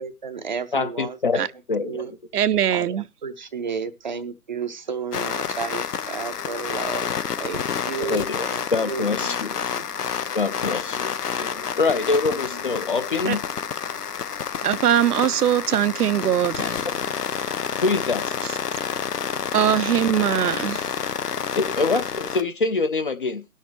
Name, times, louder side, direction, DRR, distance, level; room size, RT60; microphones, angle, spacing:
voice 1, 0.0-1.5 1.8-2.1 2.7-9.4 9.7-9.8 12.3-13.0, right 5 dB, 30° right, 0.5 m, -33 dB
voice 2, 0.7-1.4 1.7-2.0 8.0-8.4 8.7-9.7 10.3-13.4 17.8-18.3 21.6-23.5, left 4 dB, 35° left, 0.5 m, -25 dB
voice 3, 2.3-3.0 13.3-13.4 14.6-16.9 19.5-20.9, right 10 dB, 80° right, 0.6 m, -21 dB
sound 1, 5.1-22.4, left 7 dB, 85° left, 0.8 m, -29 dB
19.0 x 6.4 x 3.1 m
figure-of-eight pair, 145°, 46 cm